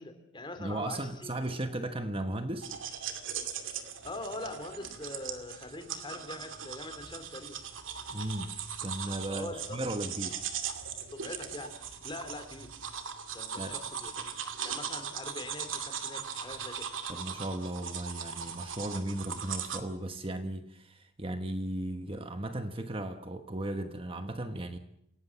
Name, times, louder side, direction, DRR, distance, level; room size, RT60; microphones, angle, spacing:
voice 1, 0.0-1.4 4.0-7.6 9.3-9.8 11.1-11.7 12.0-12.7 13.3-16.9, left 2 dB, 25° left, 7 dB, 3.3 m, -43 dB
voice 2, 0.6-2.7 8.1-8.5 8.8-10.4 13.6-13.8 17.1-24.8, right 1 dB, 25° right, 7 dB, 1.3 m, -36 dB
sound 1, 2.6-19.8, right 7 dB, 70° right, 2.4 m, -39 dB
28.0 x 17.5 x 7.4 m, 0.79 s
head